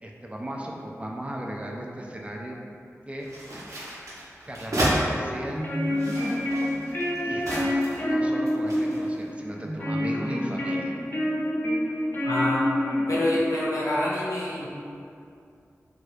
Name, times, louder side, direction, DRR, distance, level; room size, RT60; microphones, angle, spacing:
voice 1, 0.0-2.5 3.1-3.3 4.5-5.7 7.2-11.0, right 1 dB, 20° right, -1 dB, 0.4 m, -36 dB
sound 1, 3.2-5.0 5.8-8.1 8.5-9.1, right 1 dB, 80° right, 0.8 m, -31 dB
sound 2, 5.4-13.4, left 1 dB, 40° left, 0.7 m, -27 dB
voice 2, 12.2-12.8 13.1-14.7, left 1 dB, 80° left, -6 dB, 0.7 m, -26 dB
2.9 x 2.4 x 3.1 m, 2.5 s
wide cardioid pair, 50°, 5 cm